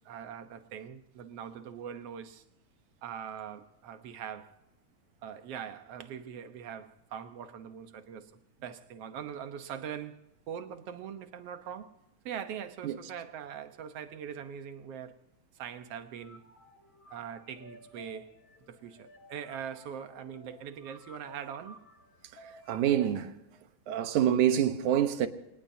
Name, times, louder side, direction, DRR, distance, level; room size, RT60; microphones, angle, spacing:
voice 1, 0.1-2.4 3.0-4.5 5.2-8.3 8.6-10.2 10.5-11.9 12.3-15.2 15.6-16.4 17.1-18.3 18.7-21.8, right 8 dB, 65° right, 1.9 m, -42 dB
sound 1, 15.9-23.2, left 1 dB, 70° left, 4.1 m, -55 dB
voice 2, 22.2-23.4 23.9-25.3, right 10 dB, 80° right, 2.5 m, -27 dB
25.5 x 19.5 x 2.8 m
omnidirectional pair, 3.4 m